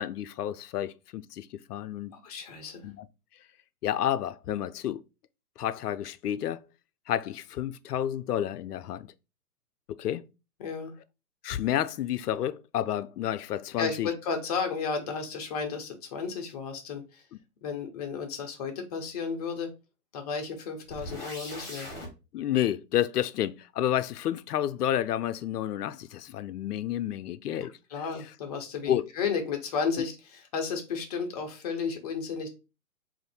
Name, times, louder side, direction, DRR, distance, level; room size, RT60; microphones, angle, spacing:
voice 1, 0.0-2.1 2.8-3.1 3.8-5.0 5.6-6.6 7.1-9.1 9.9-10.2 11.4-14.1 22.3-27.7 28.9-29.1, left 11 dB, 85° left, 0.5 m, -30 dB
voice 2, 2.1-2.9 10.6-10.9 13.8-17.2 17.6-19.7 20.1-21.9 27.6-32.5, left 5 dB, 25° left, 0.6 m, -33 dB
sound 1, 20.9-22.1, left 1 dB, 5° left, 1.2 m, -40 dB
3.6 x 2.6 x 4.1 m
hypercardioid pair, 145°, 45 cm